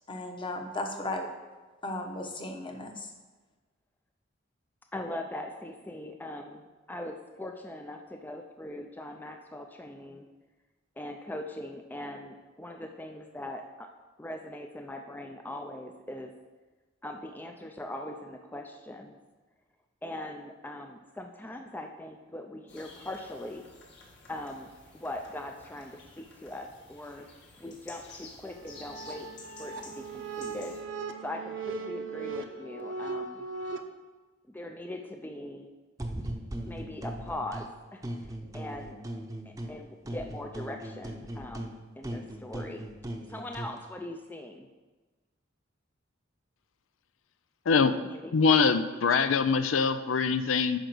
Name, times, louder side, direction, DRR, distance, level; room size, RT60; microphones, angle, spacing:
voice 1, 0.1-1.3 1.8-3.1, left 2 dB, 25° left, 3 dB, 1.0 m, -35 dB
voice 2, 4.9-10.3 11.0-13.9 14.2-16.3 17.0-19.2 20.0-23.6 24.3-27.3 27.6-29.3 29.6-30.8 31.2-33.5 34.5-35.7 36.7-39.0 39.5-42.9 43.3-44.7 47.8-48.3, left 1 dB, 10° left, 4 dB, 0.4 m, -41 dB
sound 1, 22.7-30.8, left 3 dB, 60° left, 1.9 m, -52 dB
sound 2, 28.5-33.8, right 4 dB, 65° right, 0.8 m, -38 dB
sound 3, 36.0-37.7 38.0-39.8 40.1-43.8, right 1 dB, 15° right, 0.7 m, -39 dB
voice 3, 47.7-48.0 48.3-50.8, left 5 dB, 90° left, 11 dB, 0.5 m, -23 dB
10.0 x 5.0 x 6.1 m, 1.2 s
head